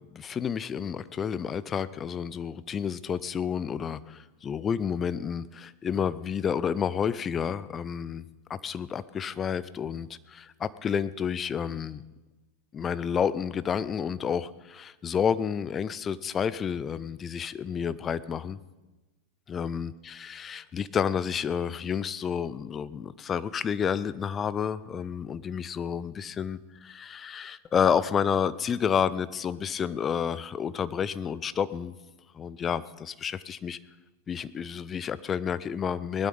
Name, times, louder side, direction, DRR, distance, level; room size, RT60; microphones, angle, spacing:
voice 1, 0.1-8.2 8.5-12.0 12.7-18.6 19.5-31.9 32.3-33.8 34.3-36.3, left 7 dB, 25° left, 16 dB, 0.6 m, -30 dB
19.0 x 12.0 x 5.4 m, 1.1 s
figure-of-eight pair, 90°, 0 cm